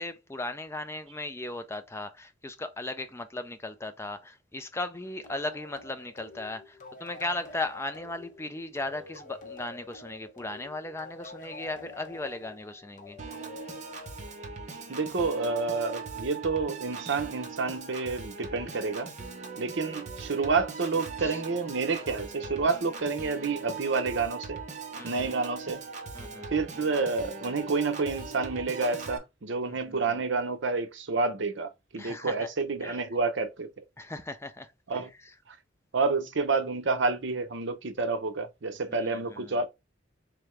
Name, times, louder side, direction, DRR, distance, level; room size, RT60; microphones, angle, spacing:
voice 1, 0.0-13.2 21.2-21.4 25.0-25.3 26.1-26.5 29.6-30.2 31.9-32.5 32.8-33.0 34.0-35.3 38.9-39.6, left 2 dB, 15° left, 0.4 m, -37 dB
sound 1, 5.2-14.5, left 3 dB, 40° left, 0.9 m, -48 dB
Piano / Organ, 13.2-29.2, right 4 dB, 40° right, 0.9 m, -40 dB
voice 2, 14.9-19.1 19.6-24.6 25.0-25.8 26.5-33.7 34.9-35.1 35.9-39.7, right 4 dB, 65° right, 0.7 m, -29 dB
3.7 x 3.4 x 3.2 m
head